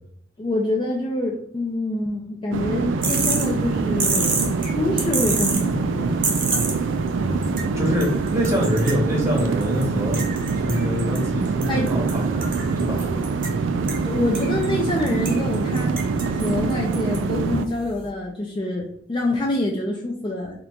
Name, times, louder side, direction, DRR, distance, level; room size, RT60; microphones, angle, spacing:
voice 1, 0.4-6.1 11.7-11.9 14.0-16.0 16.3-20.6, left 2 dB, 25° left, 0 dB, 0.4 m, -26 dB
sound 1, 2.5-17.6, right 4 dB, 70° right, 0.3 m, -24 dB
sound 2, 3.0-18.1, right 4 dB, 40° right, 0.7 m, -31 dB
voice 2, 7.2-10.2 10.6-13.1, equal, 15° right, -2 dB, 0.8 m, -25 dB
2.9 x 2.4 x 3.4 m, 0.66 s
head